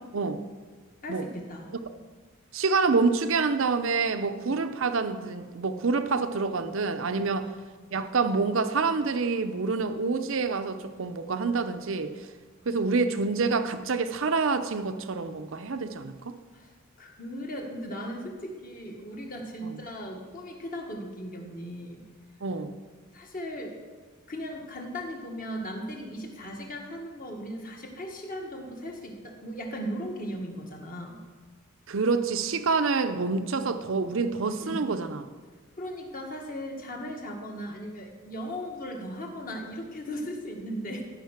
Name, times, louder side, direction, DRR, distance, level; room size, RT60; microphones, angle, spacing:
voice 1, 1.0-1.7 4.4-4.6 7.1-7.4 16.5-16.7 17.0-22.0 23.1-23.8 24.3-31.2 34.6-34.8 35.8-41.0, equal, 40° left, 1 dB, 1.6 m, -37 dB
voice 2, 2.5-7.5 7.9-12.1 12.7-16.4 19.6-19.7 22.4-22.7 31.9-35.3, right 4 dB, 65° right, 9 dB, 0.6 m, -27 dB
15.0 x 5.5 x 5.9 m, 1.4 s
head